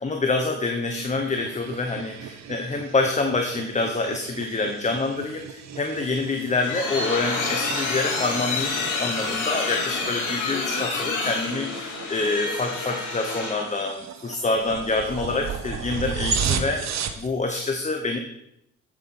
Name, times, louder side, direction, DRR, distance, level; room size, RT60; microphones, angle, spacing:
voice 1, 0.0-18.2, left 3 dB, 25° left, 4 dB, 1.0 m, -26 dB
sound 1, 1.0-17.3, right 7 dB, 60° right, 1.0 m, -35 dB
sound 2, 6.2-13.8, left 3 dB, 85° left, 2.6 m, -28 dB
8.2 x 7.3 x 5.5 m, 0.83 s
cardioid pair, 90°, 30 cm